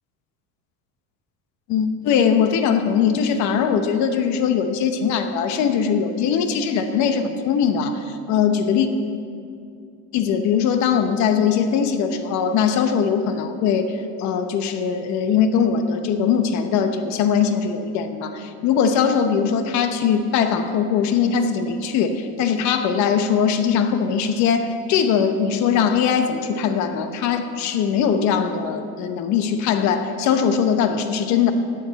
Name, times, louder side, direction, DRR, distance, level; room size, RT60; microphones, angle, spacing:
voice 1, 1.7-8.9 10.1-31.5, left 7 dB, 65° left, 8 dB, 1.0 m, -21 dB
16.0 x 9.3 x 4.1 m, 2.4 s
cardioid pair, 150°, 31 cm